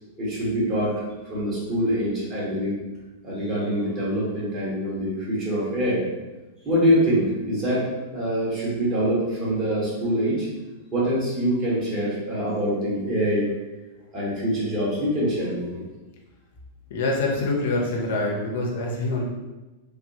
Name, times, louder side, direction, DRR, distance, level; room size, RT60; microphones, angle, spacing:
voice 1, 0.2-1.0 1.3-2.8 3.2-6.0 6.6-10.5 10.9-13.5 14.1-15.8, equal, 30° right, -7 dB, 1.5 m, -24 dB
voice 2, 16.9-19.2, left 2 dB, 70° left, -1 dB, 0.7 m, -25 dB
3.4 x 2.2 x 2.8 m, 1.1 s
hypercardioid pair, 110°, 0 cm